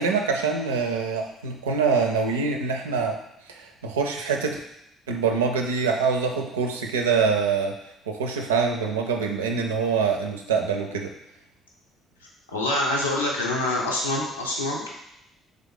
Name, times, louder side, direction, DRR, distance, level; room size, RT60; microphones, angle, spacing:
voice 1, 0.0-3.2 3.5-4.6 5.1-7.8 8.1-11.1, right 5 dB, 80° right, 3 dB, 0.4 m, -25 dB
voice 2, 12.5-14.9, left 1 dB, 85° left, -3 dB, 0.6 m, -25 dB
3.7 x 3.3 x 3.8 m, 0.80 s
figure-of-eight pair, 45°, 0 cm